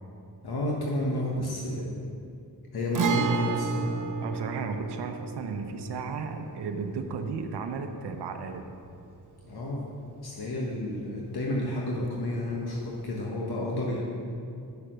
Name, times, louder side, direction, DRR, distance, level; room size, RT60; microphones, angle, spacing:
voice 1, 0.4-2.1 2.7-3.9 9.5-9.9 10.2-14.0, left 1 dB, 65° left, -3 dB, 1.3 m, -31 dB
Guitar, 2.9-10.6 10.8-10.9 12.9-13.1, right 5 dB, 50° right, 0.8 m, -33 dB
voice 2, 4.2-8.7, right 5 dB, 85° right, 6 dB, 0.7 m, -34 dB
8.2 x 6.7 x 6.2 m, 2.5 s
cardioid pair, 75°, 40 cm